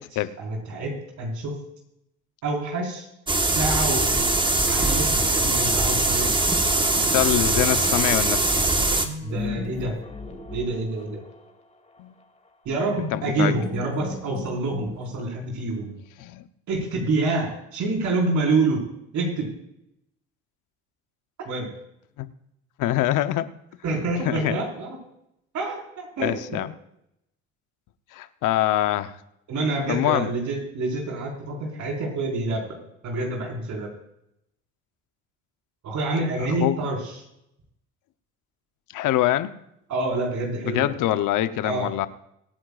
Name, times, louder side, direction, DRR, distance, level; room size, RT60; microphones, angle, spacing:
voice 1, 0.4-1.5 2.4-3.1 3.5-4.3 4.6-6.3 9.2-9.9 10.5-11.2 12.6-15.9 16.7-18.8 19.1-19.5 21.4-21.7 23.8-25.0 25.5-26.6 29.5-33.9 35.8-37.0 39.9-40.9 41.6-41.9, right 2 dB, 65° right, -1 dB, 4.9 m, -27 dB
sound 1, 3.3-9.1, right 2 dB, 15° right, 1.4 m, -22 dB
voice 2, 6.9-8.7 12.0-12.1 13.1-13.5 16.2-16.5 22.2-22.3 22.8-23.5 24.2-24.6 26.2-26.7 28.1-29.1 29.9-30.3 36.5-36.8 38.9-39.5 40.6-42.1, left 13 dB, 80° left, 12 dB, 0.9 m, -24 dB
sound 2, 8.9-11.5 12.9-15.4, left 3 dB, 20° left, 2.5 m, -36 dB
24.0 x 9.7 x 2.5 m, 0.80 s
cardioid pair, 100°, 31 cm